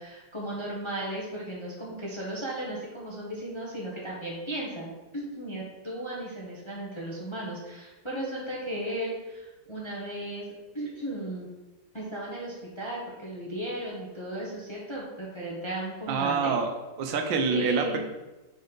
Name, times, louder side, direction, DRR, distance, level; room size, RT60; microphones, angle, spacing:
voice 1, 0.0-10.5 10.7-11.5 11.9-16.5 17.5-18.0, right 1 dB, 25° left, -4 dB, 0.7 m, -35 dB
voice 2, 16.1-16.7 17.0-18.0, right 5 dB, 80° right, 4 dB, 1.5 m, -26 dB
5.1 x 5.1 x 4.0 m, 1.1 s
omnidirectional pair, 2.1 m